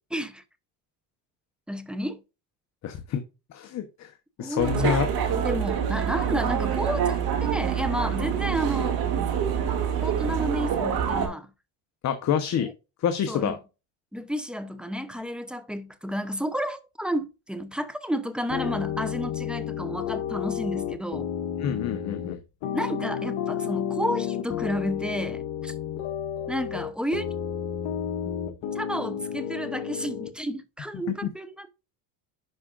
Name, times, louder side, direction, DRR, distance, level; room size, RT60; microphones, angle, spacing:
voice 1, 0.1-0.4 1.7-2.2 4.4-9.0 10.0-11.5 12.6-12.7 13.3-13.6 14.1-21.3 22.7-25.7 26.5-27.3 28.7-31.7, equal, ahead, 0.7 m, -31 dB
voice 2, 2.8-3.2 3.5-4.1 4.4-5.1 12.0-12.7 13.0-13.6 21.6-22.4 31.1-31.3, left 8 dB, 35° left, 0.9 m, -27 dB
sound 1, 4.6-11.3, right 8 dB, 50° right, 2.4 m, -26 dB
sound 2, 18.5-30.3, left 9 dB, 55° left, 1.4 m, -31 dB
11.0 x 5.0 x 2.5 m
cardioid pair, 125°, 46 cm